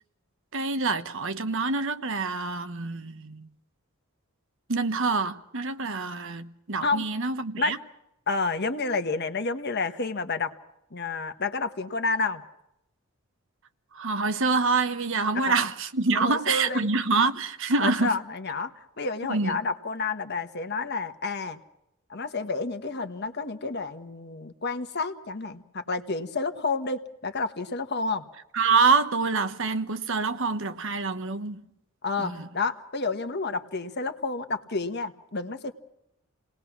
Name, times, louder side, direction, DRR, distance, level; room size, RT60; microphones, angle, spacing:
voice 1, 0.5-3.5 4.7-7.8 13.9-18.2 19.3-19.6 28.5-31.6 32.2-32.5, right 4 dB, 60° right, 1.1 m, -26 dB
voice 2, 8.3-10.5 10.9-12.4 15.3-15.5 16.1-16.9 17.8-21.6 22.1-28.2 32.0-35.7, left 3 dB, 50° left, 1.4 m, -30 dB
29.0 x 19.5 x 6.0 m
head